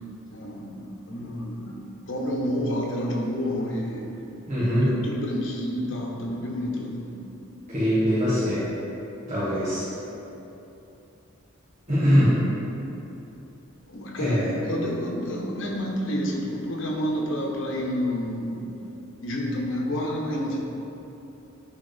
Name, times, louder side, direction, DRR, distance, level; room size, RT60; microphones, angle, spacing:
voice 1, 0.3-0.8 1.1-1.8 2.1-4.1 4.8-7.2 13.9-18.5 19.2-20.6, equal, 65° left, -3 dB, 1.3 m, -29 dB
voice 2, 4.5-5.0 7.7-8.7 9.3-9.8 11.9-12.4 14.2-14.6, equal, 35° right, -13 dB, 1.6 m, -22 dB
10.5 x 3.8 x 4.0 m, 2.9 s
head